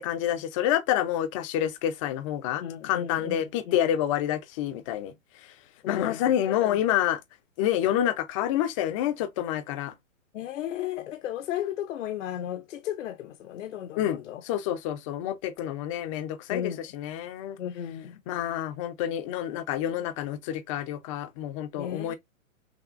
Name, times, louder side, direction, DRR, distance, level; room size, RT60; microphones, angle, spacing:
voice 1, 0.0-5.1 5.9-7.2 7.6-9.9 14.0-14.2 14.5-17.6 18.3-22.1, left 11 dB, 25° left, 0.5 m, -28 dB
voice 2, 2.6-3.8 5.8-6.8 10.3-14.4 16.5-16.9 17.6-18.2 21.7-22.2, left 11 dB, 65° left, 0.7 m, -35 dB
6.0 x 2.3 x 2.5 m
hypercardioid pair, 130°, 40 cm